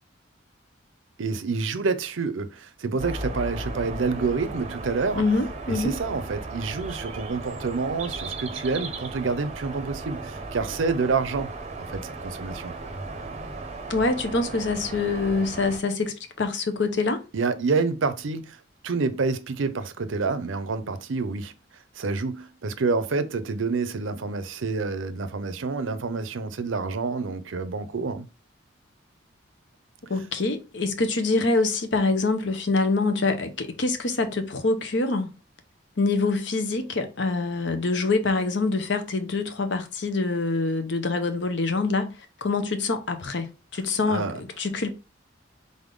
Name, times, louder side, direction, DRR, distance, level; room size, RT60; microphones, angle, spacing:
voice 1, 1.2-5.2 5.7-11.5 11.9-12.7 17.3-18.6 18.8-21.5 22.0-28.3 44.1-44.4, right 4 dB, 85° right, 0.6 m, -28 dB
sound 1, 3.0-15.8, right 2 dB, 35° right, 0.6 m, -36 dB
voice 2, 5.2-5.9 13.9-17.2 30.1-35.3 36.0-42.1 42.4-44.9, left 3 dB, 65° left, 0.8 m, -25 dB
3.9 x 3.6 x 3.8 m
head